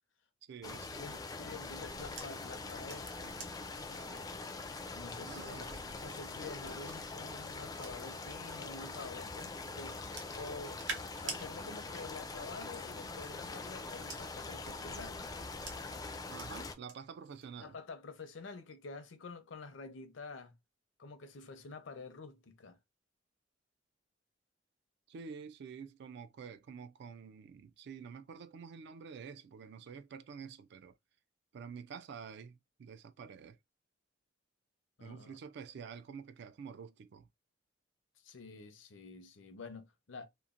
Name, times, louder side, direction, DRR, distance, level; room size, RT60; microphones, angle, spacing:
voice 1, 0.5-1.0 1.5-1.6 5.2-6.0 16.3-17.8 25.1-30.9 31.5-33.6 35.0-37.3, right 6 dB, 65° right, 0.3 m, -48 dB
sound 1, 0.6-16.8, left 3 dB, 20° left, 0.3 m, -43 dB
sound 2, 0.8-8.4 9.0-11.4 12.7-16.9 17.3-17.7, right 4 dB, 80° right, 0.9 m, -50 dB
voice 2, 1.0-4.4 4.9-5.7 6.0-10.8 11.2-15.3 17.6-20.6 21.0-22.8 35.0-35.4 38.2-40.3, left 3 dB, 75° left, 0.6 m, -48 dB
3.0 x 2.1 x 2.4 m
head